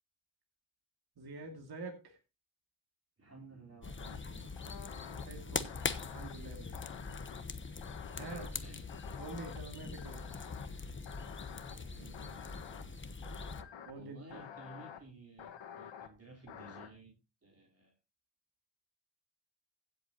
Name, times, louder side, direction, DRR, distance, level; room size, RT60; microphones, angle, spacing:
voice 1, 1.2-2.2 5.2-5.7 6.1-6.8 7.6-7.8 8.2-8.5 9.2-10.3 13.9-14.5, right 3 dB, 60° right, 2.5 m, -46 dB
voice 2, 3.2-5.7 8.1-8.8 11.7-12.4 13.9-17.1 17.4-17.9, right 2 dB, 35° right, 3.7 m, -55 dB
sound 1, 3.8-13.6, left 4 dB, 25° left, 1.1 m, -42 dB
sound 2, 4.0-4.2 4.6-5.3 5.6-6.3 6.7-7.4 7.8-8.5 8.9-9.6 10.0-10.7 11.1-11.8 12.1-12.8 13.2-13.9 14.3-15.0 15.4-16.1 16.5-16.9, left 8 dB, 85° left, 1.6 m, -49 dB
16.0 x 7.8 x 2.9 m
cardioid pair, 80°, 44 cm